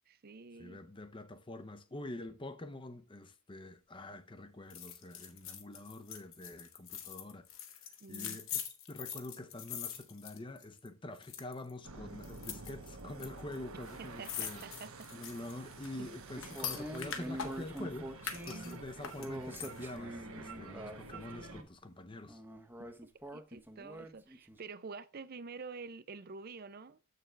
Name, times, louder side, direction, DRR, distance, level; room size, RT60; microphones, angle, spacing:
voice 1, 0.1-0.8 8.0-8.4 14.0-15.1 16.0-16.1 18.5-18.9 22.8-27.0, right 4 dB, 45° right, 0.5 m, -48 dB
voice 2, 0.6-8.6 8.9-14.6 15.1-22.4, left 1 dB, 25° left, 0.7 m, -46 dB
sound 1, 4.7-10.9 11.2-11.7 12.2-13.3 13.5-13.6 13.8-17.8 18.2-20.0 20.4-20.5, left 8 dB, 65° left, 1.4 m, -43 dB
sound 2, 11.8-21.6, right 3 dB, 75° right, 1.1 m, -50 dB
sound 3, 16.4-21.6 22.3-24.6, equal, 10° right, 0.7 m, -45 dB
7.6 x 6.7 x 3.3 m
head